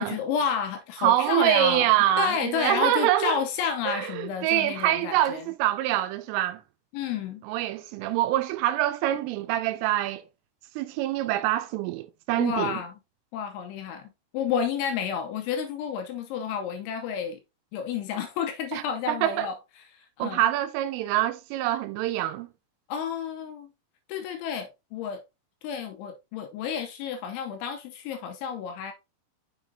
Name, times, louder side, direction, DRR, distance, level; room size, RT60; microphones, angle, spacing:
voice 1, 0.0-1.9 2.2-5.4 6.9-7.4 12.4-13.0 13.3-17.4 17.7-19.6 19.9-20.4 22.9-23.7 24.1-25.2 25.6-28.9, left 7 dB, 80° left, 2.8 m, -30 dB
voice 2, 1.0-3.4 3.9-6.6 7.5-10.2 10.8-12.8 18.7-19.5 20.2-22.5, right 13 dB, 85° right, 3.0 m, -25 dB
7.4 x 6.4 x 2.6 m
omnidirectional pair, 5.9 m